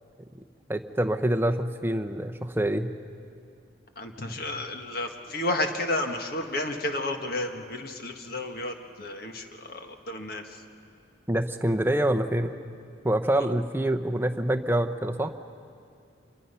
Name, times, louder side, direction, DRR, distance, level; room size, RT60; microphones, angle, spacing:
voice 1, 0.7-2.9 11.3-12.6 13.0-15.3, right 1 dB, 10° right, 6 dB, 0.7 m, -26 dB
voice 2, 4.0-10.4, left 1 dB, 50° left, 4 dB, 1.6 m, -32 dB
27.0 x 23.0 x 5.7 m, 2.4 s
head